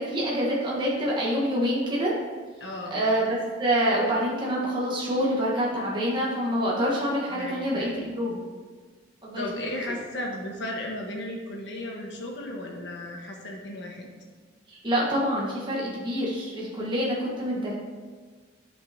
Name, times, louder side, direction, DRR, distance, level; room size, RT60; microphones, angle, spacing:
voice 1, 0.0-2.1 2.9-8.3 9.2-9.4 14.7-17.7, equal, 25° right, -5 dB, 1.3 m, -26 dB
voice 2, 2.6-3.1 7.3-8.4 9.4-14.1, left 1 dB, 70° left, 0 dB, 1.3 m, -35 dB
11.0 x 5.4 x 2.8 m, 1.5 s
head